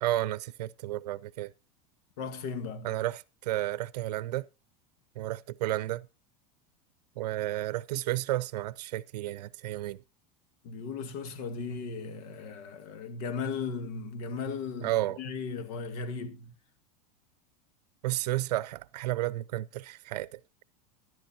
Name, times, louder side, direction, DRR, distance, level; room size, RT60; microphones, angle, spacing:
voice 1, 0.0-1.5 2.8-4.5 5.2-6.1 7.2-10.0 14.8-15.2 18.0-20.4, right 15 dB, 85° right, 0.6 m, -32 dB
voice 2, 2.2-2.9 10.6-16.5, left 5 dB, 65° left, 1.9 m, -36 dB
13.0 x 11.0 x 4.3 m
supercardioid pair, 125°, 20 cm